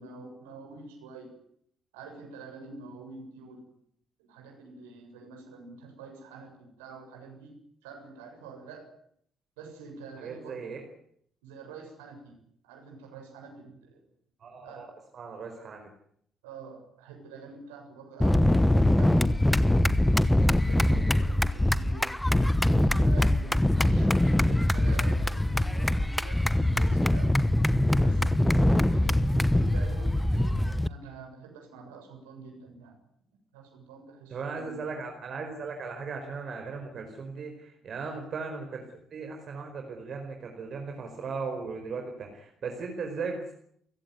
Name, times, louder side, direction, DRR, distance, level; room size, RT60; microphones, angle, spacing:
voice 1, 0.0-1.4 1.9-3.7 4.2-8.9 9.6-10.6 11.4-12.4 12.6-14.0 14.6-14.9 16.4-19.4 20.2-27.5 28.0-33.0 33.5-34.9 38.0-38.2, right 4 dB, 70° right, 2 dB, 7.2 m, -46 dB
voice 2, 10.2-10.8 14.4-14.9 15.1-15.9 34.3-38.8 39.1-43.5, right 4 dB, 45° right, 3 dB, 4.8 m, -37 dB
sound 1, 18.2-30.9, left 1 dB, 10° left, 1.2 m, -23 dB
29.5 x 16.5 x 9.6 m, 0.69 s
figure-of-eight pair, 45°, 0 cm